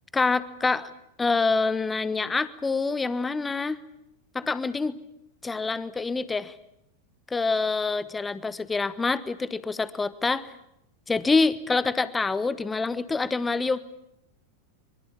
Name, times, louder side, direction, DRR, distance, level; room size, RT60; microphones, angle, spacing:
voice 1, 0.1-0.9 1.2-3.8 4.3-5.0 5.4-6.5 7.3-10.5 11.1-13.8, left 4 dB, 10° left, 17 dB, 1.1 m, -26 dB
25.0 x 23.5 x 8.4 m, 0.78 s
figure-of-eight pair, 90°, 0 cm